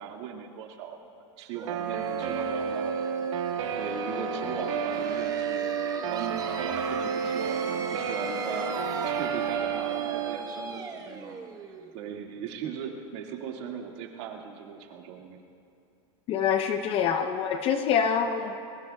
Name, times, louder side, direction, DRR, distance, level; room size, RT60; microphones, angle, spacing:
voice 1, 0.0-3.0 3.8-11.4 11.9-15.4, right 7 dB, 65° right, 0 dB, 2.0 m, -38 dB
sound 1, 1.5-13.1, right 5 dB, 25° right, 1.1 m, -39 dB
Guitar, 1.7-10.4, right 6 dB, 80° right, 1.4 m, -31 dB
voice 2, 16.3-18.6, left 7 dB, 35° left, 7 dB, 0.7 m, -26 dB
22.0 x 21.5 x 2.3 m, 2.4 s
supercardioid pair, 140°, 16 cm